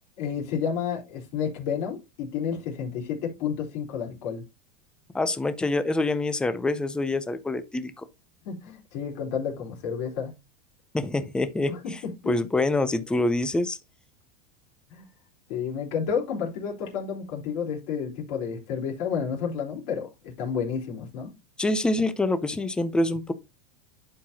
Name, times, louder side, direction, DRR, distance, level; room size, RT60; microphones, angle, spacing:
voice 1, 0.2-4.4 8.4-10.4 11.7-12.3 14.9-15.0 15.5-21.3, left 7 dB, 55° left, 3.6 m, -31 dB
voice 2, 5.1-8.1 10.9-12.0 12.3-13.8 21.6-23.3, left 2 dB, 5° left, 0.4 m, -26 dB
11.0 x 4.7 x 2.7 m
supercardioid pair, 160°, 21 cm